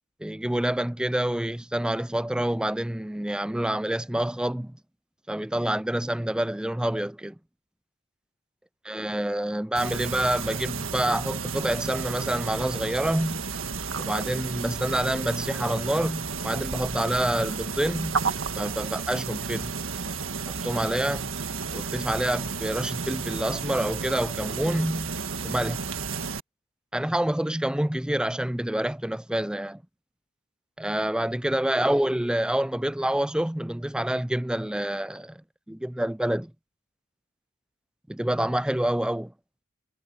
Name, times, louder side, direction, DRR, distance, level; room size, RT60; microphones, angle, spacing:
voice 1, 0.2-4.8 5.3-7.4 8.9-13.4 14.0-18.3 18.6-19.7 20.5-21.3 21.7-25.1 25.4-25.8 26.9-29.8 30.8-35.4 35.7-36.5 38.1-39.3, right 1 dB, 5° right, 0.3 m, -27 dB
sound 1, 9.8-26.4, right 5 dB, 70° right, 1.7 m, -32 dB
head